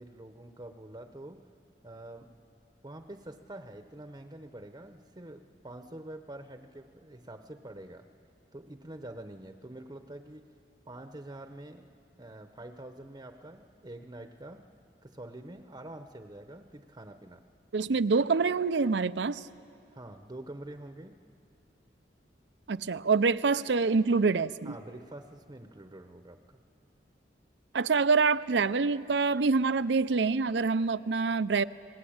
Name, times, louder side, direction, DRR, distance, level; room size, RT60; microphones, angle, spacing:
voice 1, 0.0-1.4 1.8-2.3 2.8-8.1 8.5-10.6 10.9-14.6 15.0-17.4 19.9-21.2 24.6-26.6, right 1 dB, 25° right, 7 dB, 0.8 m, -46 dB
voice 2, 17.7-19.4 22.7-24.7 27.7-31.6, right 4 dB, 75° right, 16 dB, 0.6 m, -26 dB
29.5 x 20.0 x 8.8 m, 2.7 s
head